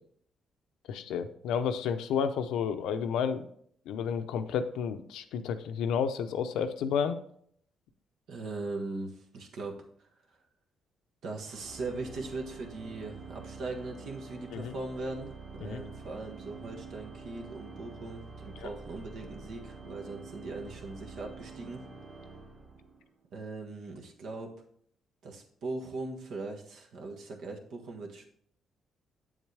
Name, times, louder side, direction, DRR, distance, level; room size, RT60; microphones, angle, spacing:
voice 1, 0.9-3.5 3.9-7.2 14.5-14.7 15.6-15.8 18.6-18.7, left 7 dB, 85° left, 9 dB, 0.6 m, -31 dB
voice 2, 8.3-10.1 11.2-21.8 23.3-24.5 25.2-28.3, right 3 dB, 70° right, 2 dB, 1.5 m, -40 dB
Organ, 11.4-23.2, right 4 dB, 55° right, 2.8 m, -47 dB
7.9 x 7.3 x 3.4 m, 0.64 s
cardioid pair, 90°, 0 cm